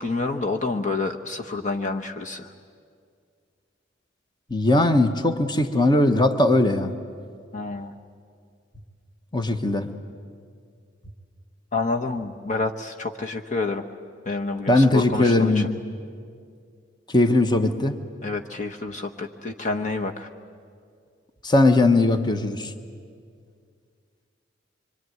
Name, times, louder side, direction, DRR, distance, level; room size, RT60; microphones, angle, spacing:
voice 1, 0.0-2.5 7.5-7.9 11.7-13.8 14.3-15.7 18.2-20.3, left 3 dB, 40° left, 3 dB, 1.0 m, -28 dB
voice 2, 4.5-6.9 9.3-9.9 14.7-15.7 17.1-18.0 21.4-22.7, left 2 dB, 25° left, 8 dB, 1.1 m, -19 dB
25.0 x 25.0 x 9.4 m, 2.2 s
head